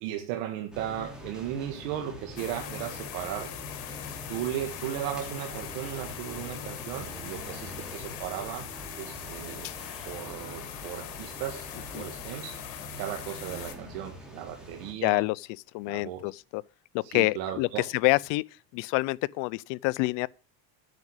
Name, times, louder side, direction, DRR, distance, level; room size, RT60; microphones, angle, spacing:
voice 1, 0.0-3.5 4.3-8.7 9.0-9.7 10.1-12.5 13.0-15.2 15.9-16.3 17.0-17.8, right 11 dB, 80° right, 1.8 m, -36 dB
sound 1, 0.7-14.9, left 1 dB, ahead, 2.9 m, -44 dB
sound 2, 2.4-13.8, left 12 dB, 85° left, 1.7 m, -42 dB
voice 2, 15.0-15.5 15.7-16.6 16.9-18.4 18.7-20.3, left 23 dB, 60° left, 0.5 m, -27 dB
9.4 x 6.1 x 7.9 m
cardioid pair, 130°, 50 cm